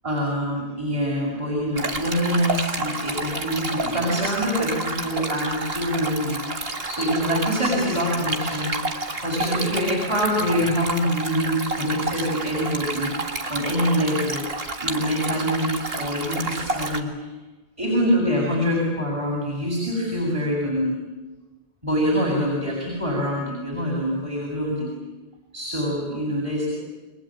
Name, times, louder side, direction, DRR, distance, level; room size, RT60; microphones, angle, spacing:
voice 1, 0.0-8.8 9.2-13.1 13.5-14.5 14.8-17.1 17.8-21.0 21.8-24.9 25.5-26.7, equal, 30° right, -3 dB, 7.6 m, -25 dB
Stream, 1.8-17.0, right 2 dB, 70° right, 2.2 m, -30 dB
30.0 x 23.0 x 7.8 m, 1.2 s
omnidirectional pair, 1.1 m